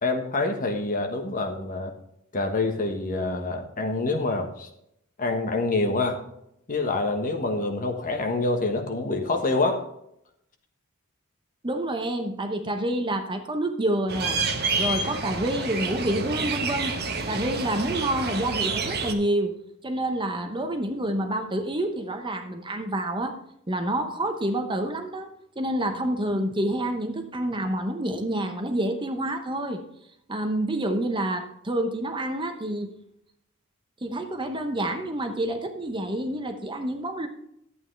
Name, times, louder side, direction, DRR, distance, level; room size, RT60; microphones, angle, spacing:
voice 1, 0.0-1.9 2.3-4.7 5.2-6.2 6.7-9.8, left 3 dB, 40° left, 4 dB, 1.3 m, -26 dB
voice 2, 11.6-14.4 14.8-17.0 17.3-19.5 19.8-23.4 23.7-25.3 25.6-29.8 30.3-32.9 34.0-37.3, right 1 dB, 20° right, 6 dB, 0.9 m, -28 dB
sound 1, 14.1-19.1, right 3 dB, 45° right, 1.1 m, -28 dB
11.5 x 8.5 x 3.3 m, 0.77 s
head